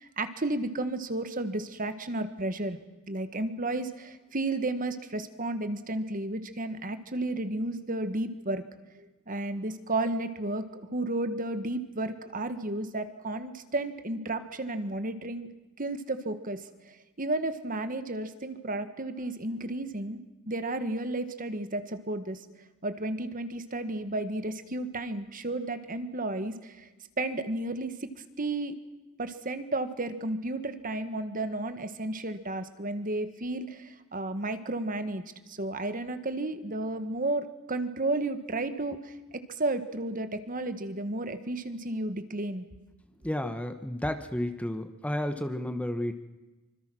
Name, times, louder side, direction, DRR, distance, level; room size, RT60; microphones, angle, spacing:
voice 1, 0.0-2.8 3.1-8.6 9.0-15.5 15.8-20.2 20.5-22.4 22.8-26.9 27.2-28.1 28.4-28.8 29.2-35.2 35.5-42.6, right 2 dB, 40° right, 10 dB, 1.5 m, -33 dB
voice 2, 43.2-46.1, left 1 dB, 5° left, 8 dB, 1.0 m, -32 dB
25.5 x 25.5 x 6.2 m, 1.1 s
head